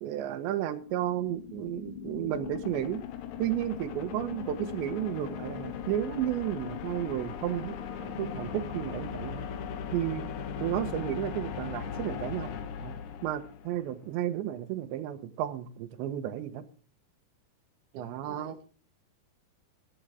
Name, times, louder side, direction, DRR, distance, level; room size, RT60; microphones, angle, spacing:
voice 1, 0.0-3.0 3.4-9.5 9.9-12.5 12.8-12.9 13.2-16.7 17.9-18.6, right 12 dB, 90° right, 10 dB, 3.4 m, -33 dB
sound 1, 0.8-13.9, left 8 dB, 75° left, 1.7 m, -39 dB
voice 2, 17.9-18.6, right 3 dB, 35° right, 4 dB, 0.8 m, -49 dB
16.0 x 11.5 x 3.5 m, 0.38 s
omnidirectional pair, 5.1 m